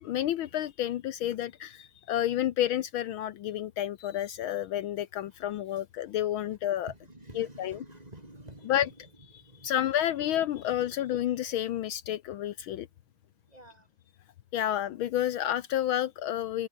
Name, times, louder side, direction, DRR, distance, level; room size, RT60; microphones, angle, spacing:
voice 1, 0.0-6.9 7.3-7.8 8.6-8.9 9.3-12.9 14.5-16.7, left 11 dB, 75° left, 1.6 m, -30 dB
voice 2, 6.9-8.8 9.3-9.7 13.5-13.9, right 1 dB, 15° right, 4.6 m, -49 dB
open air
omnidirectional pair, 2.4 m